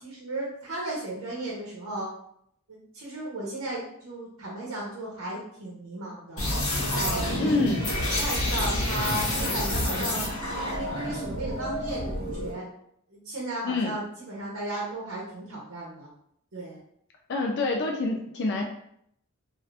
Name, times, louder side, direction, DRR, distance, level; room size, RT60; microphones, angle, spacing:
voice 1, 0.0-2.1 2.7-6.5 7.0-7.7 8.1-12.6 13.1-16.1 16.5-16.8, right 1 dB, 70° right, -5 dB, 0.9 m, -35 dB
sound 1, 6.4-12.5, left 1 dB, 70° left, 1.2 m, -28 dB
voice 2, 7.4-7.9 13.6-13.9 17.3-18.6, left 3 dB, 50° left, 1 dB, 0.4 m, -27 dB
2.7 x 2.5 x 3.2 m, 0.71 s
head